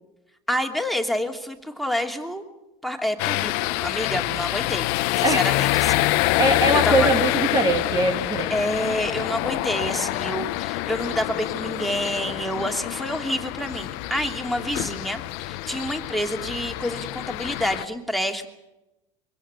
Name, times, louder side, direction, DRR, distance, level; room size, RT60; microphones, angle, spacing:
voice 1, 0.5-2.4 2.8-4.9 5.2-6.1 6.8-7.1 8.5-18.5, equal, ahead, 3 dB, 3.0 m, -28 dB
sound 1, 3.2-17.9, left 18 dB, 70° left, 1.0 m, -26 dB
voice 2, 6.0-8.5, right 2 dB, 25° right, 5 dB, 2.2 m, -23 dB
24.0 x 18.0 x 8.3 m, 0.94 s
supercardioid pair, 105°, 17 cm